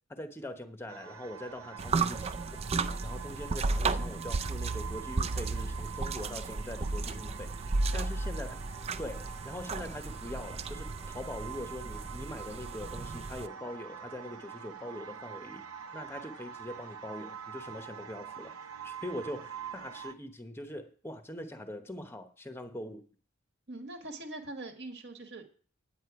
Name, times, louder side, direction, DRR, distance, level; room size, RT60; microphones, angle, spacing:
voice 1, 0.1-2.3 3.0-8.6 9.0-15.6 15.9-18.5 18.8-23.0, left 1 dB, 10° left, 7 dB, 0.9 m, -42 dB
sound 1, 0.9-20.1, right 7 dB, 85° right, 0.9 m, -46 dB
voice 2, 1.7-2.0 7.9-8.1 23.7-25.5, right 2 dB, 50° right, 4 dB, 1.6 m, -43 dB
sound 2, 1.8-13.5, right 3 dB, 30° right, 0.4 m, -34 dB
9.9 x 8.7 x 4.8 m, 0.43 s
head